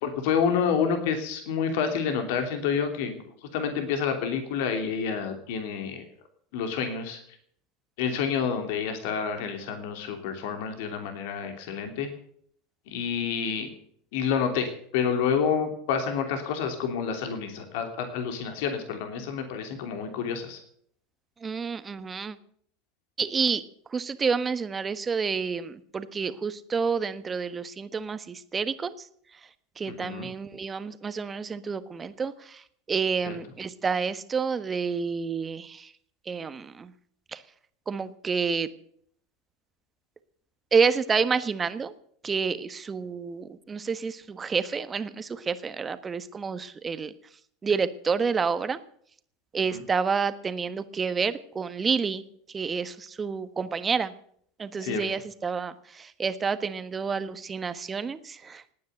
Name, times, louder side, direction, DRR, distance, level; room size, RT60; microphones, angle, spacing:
voice 1, 0.0-6.0 6.5-7.2 8.0-12.1 12.9-13.7 14.1-20.6 29.9-30.3 33.3-33.4 49.7-49.8 54.8-55.0, left 6 dB, 65° left, 6 dB, 3.0 m, -29 dB
voice 2, 21.4-22.4 23.2-23.6 23.9-29.1 29.8-35.9 36.3-36.9 37.3-37.4 37.9-38.7 40.7-41.9 42.2-47.1 47.6-48.8 49.5-54.1 54.6-58.7, right 5 dB, 25° right, 12 dB, 1.4 m, -29 dB
18.5 x 9.5 x 8.0 m, 0.65 s
hypercardioid pair, 85°, 0 cm